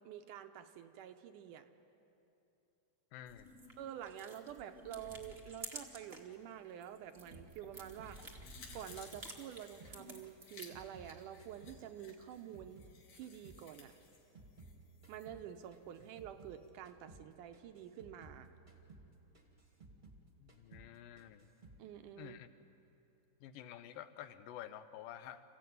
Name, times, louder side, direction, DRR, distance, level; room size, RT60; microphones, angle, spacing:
voice 1, 0.0-1.7 3.8-8.2 8.7-12.8 13.1-13.9 15.1-18.5 21.8-22.4, right 10 dB, 75° right, 8 dB, 2.2 m, -48 dB
voice 2, 3.1-3.7 20.4-21.5 22.2-22.5 23.4-25.4, left 11 dB, 85° left, 11 dB, 2.6 m, -50 dB
sound 1, 3.3-6.3 6.7-10.9, right 2 dB, 40° right, 0.8 m, -52 dB
sound 2, 7.3-10.0 10.3-13.0 13.2-16.6 16.8-17.3 17.5-20.2 20.5-20.9 21.2-21.8, right 3 dB, 20° right, 1.2 m, -58 dB
sound 3, 7.8-15.3 15.6-15.7, left 5 dB, 60° left, 3.5 m, -59 dB
28.0 x 15.5 x 9.3 m, 2.9 s
omnidirectional pair, 4.0 m